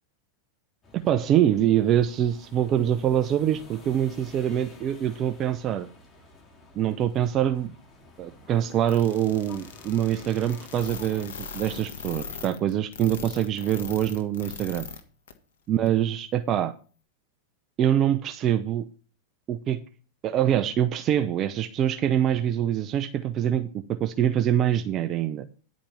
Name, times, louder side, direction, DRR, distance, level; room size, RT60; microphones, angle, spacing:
sound 1, 0.8-12.3, left 2 dB, 25° left, 2.9 m, -50 dB
voice 1, 0.9-5.9 6.8-7.7 8.2-14.9 15.7-16.7 17.8-18.9 19.5-19.8 20.2-25.4, right 10 dB, 35° right, 10 dB, 0.7 m, -24 dB
sound 2, 8.9-15.0 15.3-15.4 15.9-16.0, left 6 dB, 70° left, 1.6 m, -39 dB
10.5 x 5.1 x 7.1 m, 0.38 s
hypercardioid pair, 95°, 0 cm